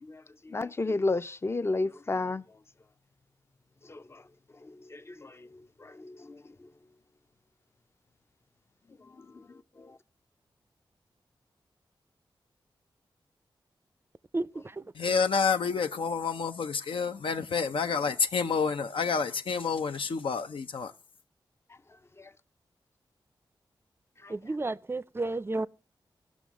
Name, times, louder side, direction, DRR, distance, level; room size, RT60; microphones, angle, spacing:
voice 1, 0.0-2.4 3.9-4.2 4.7-5.4 5.8-6.4 9.2-9.5 9.8-9.9 22.2-22.3 24.2-24.3, left 3 dB, 30° left, 0.5 m, -33 dB
voice 2, 14.3-14.9 24.3-25.7, right 2 dB, 25° right, 0.4 m, -32 dB
voice 3, 14.9-20.9, left 5 dB, 80° left, 0.6 m, -29 dB
18.5 x 6.2 x 3.6 m
cardioid pair, 70°, 9 cm